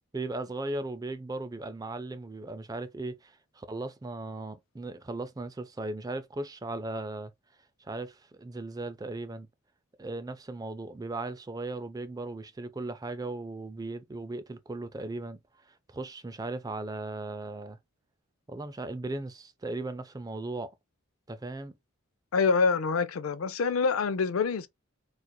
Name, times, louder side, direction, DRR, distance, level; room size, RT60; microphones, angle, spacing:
voice 1, 0.1-7.3 7.8-9.5 10.0-15.4 15.7-17.8 18.5-20.7 21.3-21.7, right 2 dB, 15° right, 0.4 m, -37 dB
voice 2, 22.3-24.7, left 5 dB, 70° left, 0.5 m, -26 dB
4.3 x 2.5 x 2.2 m
head